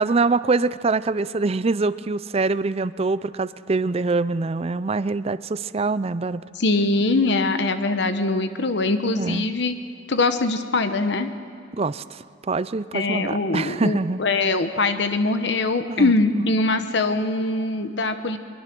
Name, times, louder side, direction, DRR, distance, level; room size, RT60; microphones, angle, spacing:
voice 1, 0.0-6.4 9.2-9.5 11.7-14.2 15.9-16.2, right 3 dB, 30° right, 15 dB, 0.5 m, -24 dB
voice 2, 6.6-9.7 10.1-11.3 12.9-18.4, left 3 dB, 65° left, 9 dB, 1.0 m, -22 dB
23.5 x 22.5 x 6.1 m, 2.5 s
head